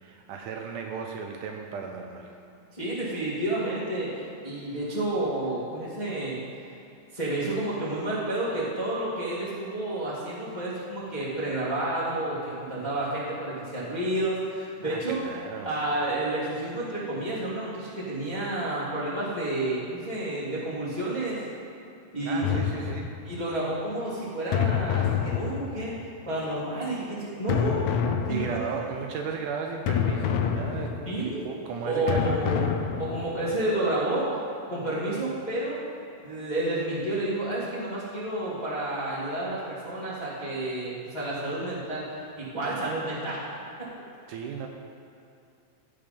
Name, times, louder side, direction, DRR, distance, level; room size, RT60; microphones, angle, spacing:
voice 1, 0.0-2.4 14.8-15.8 22.2-23.1 28.3-32.7 44.3-44.7, right 5 dB, 75° right, 2 dB, 2.1 m, -35 dB
voice 2, 2.7-4.1 4.4-6.4 7.1-15.2 15.6-21.4 22.1-22.5 23.2-26.0 26.2-27.8 28.3-28.8 31.0-31.5 31.8-32.7 33.0-34.3 34.7-35.8 36.2-42.1 42.4-43.4 43.8-43.9, right 1 dB, 15° left, -9 dB, 1.5 m, -30 dB
sound 1, 22.4-23.4 24.5-26.1 27.5-28.9 29.9-31.3 32.1-33.5, left 8 dB, 80° left, 1.7 m, -28 dB
15.5 x 5.3 x 5.2 m, 2.6 s
omnidirectional pair, 3.9 m